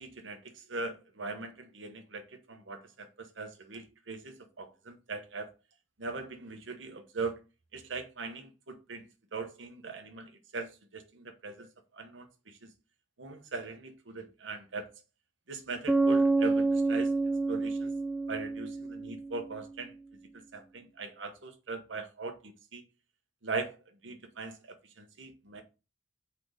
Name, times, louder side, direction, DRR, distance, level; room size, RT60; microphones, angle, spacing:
voice 1, 0.0-5.5 6.0-7.4 7.7-9.1 9.3-11.7 11.9-12.6 13.2-14.9 15.5-17.1 17.5-17.9 18.3-19.9 20.5-22.8 23.4-23.8 24.0-25.6, right 3 dB, 75° right, 1.1 m, -40 dB
Bass guitar, 15.9-19.5, right 3 dB, 5° right, 0.4 m, -28 dB
4.7 x 4.3 x 5.0 m
head